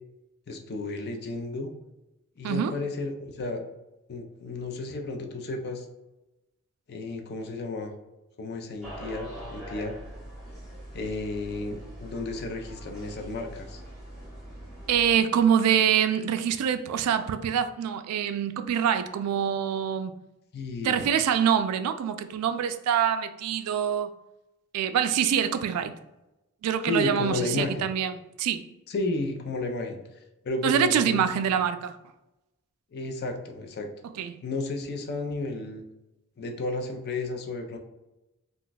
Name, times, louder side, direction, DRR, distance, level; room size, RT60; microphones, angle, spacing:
voice 1, 0.5-1.7 2.4-3.6 4.1-5.9 6.9-7.9 8.4-10.0 10.9-13.8 20.5-21.1 26.9-27.9 28.9-30.0 30.4-31.3 32.9-33.9 34.4-35.8 36.4-37.8, left 2 dB, 45° left, 0.4 m, -32 dB
voice 2, 2.4-2.7 14.9-20.1 20.8-24.1 24.7-25.9 26.6-28.6 30.6-32.0 34.2-34.4, right 8 dB, 85° right, 0.3 m, -25 dB
sound 1, 8.8-15.2, right 1 dB, ahead, 0.9 m, -42 dB
2.4 x 2.2 x 3.9 m
head